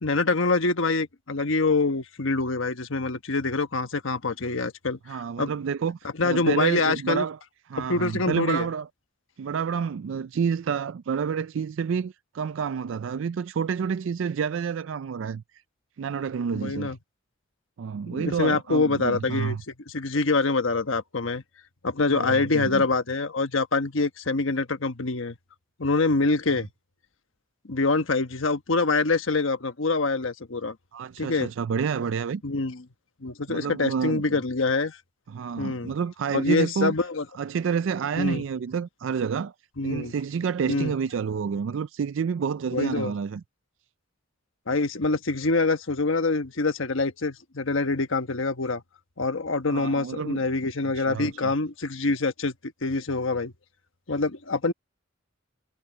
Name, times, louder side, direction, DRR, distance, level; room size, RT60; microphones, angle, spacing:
voice 1, 0.0-5.5 6.2-7.2 7.8-8.7 16.6-17.0 18.1-19.6 19.9-21.4 21.8-25.3 25.8-26.7 27.7-30.8 31.2-31.5 32.4-32.8 33.2-35.0 35.6-35.9 36.3-37.2 38.2-38.4 39.8-40.1 40.7-40.9 42.7-43.1 44.7-48.8 49.2-52.5 52.8-53.5 54.1-54.7, left 3 dB, 75° left, 1.2 m, -25 dB
voice 2, 5.1-7.4 7.7-8.9 9.4-15.4 16.0-16.9 17.8-19.6 22.1-22.9 30.9-32.4 33.5-34.4 35.3-37.0 37.3-39.5 39.8-43.4 49.7-50.5 50.8-51.5, right 6 dB, 70° right, 0.4 m, -29 dB
head